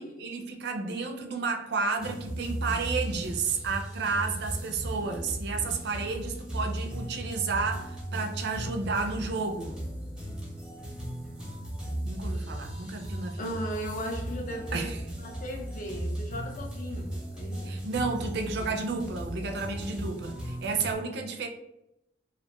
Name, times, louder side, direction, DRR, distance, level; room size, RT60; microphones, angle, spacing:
voice 1, 0.0-9.8 12.0-13.5 14.7-15.0 17.6-21.5, right 4 dB, 65° right, 0.4 m, -32 dB
sound 1, 2.0-20.9, right 1 dB, 5° right, 0.6 m, -36 dB
voice 2, 13.4-17.9, equal, 45° left, 0.5 m, -37 dB
2.5 x 2.2 x 2.9 m
head